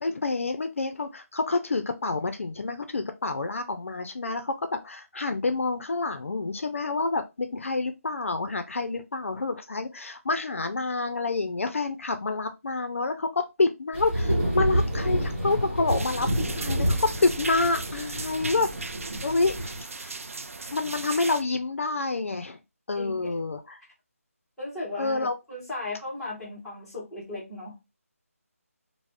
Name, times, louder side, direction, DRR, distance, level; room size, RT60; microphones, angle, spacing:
voice 1, 0.0-18.7 19.2-19.6 20.0-20.2 20.7-22.6 22.9-23.8 25.0-25.4, left 3 dB, 60° left, 0.4 m, -28 dB
sound 1, 13.9-19.8, equal, 40° right, 1.0 m, -28 dB
sound 2, 15.9-21.4, right 3 dB, 65° right, 0.3 m, -38 dB
voice 2, 22.9-23.3 24.6-27.8, left 2 dB, ahead, 0.7 m, -36 dB
2.4 x 2.0 x 3.3 m
figure-of-eight pair, 170°, 8 cm